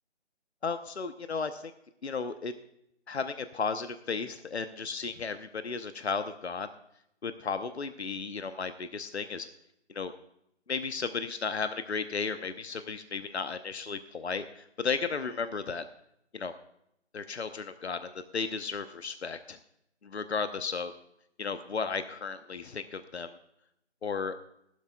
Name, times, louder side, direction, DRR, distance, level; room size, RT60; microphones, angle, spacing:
voice 1, 0.6-1.7 2.0-2.5 3.1-6.7 7.2-9.5 9.9-10.1 10.7-15.8 16.3-16.5 17.1-19.6 20.0-20.9 21.4-23.4 24.0-24.3, left 5 dB, 70° left, 10 dB, 0.9 m, -34 dB
18.0 x 12.0 x 2.3 m, 0.78 s
figure-of-eight pair, 170°, 34 cm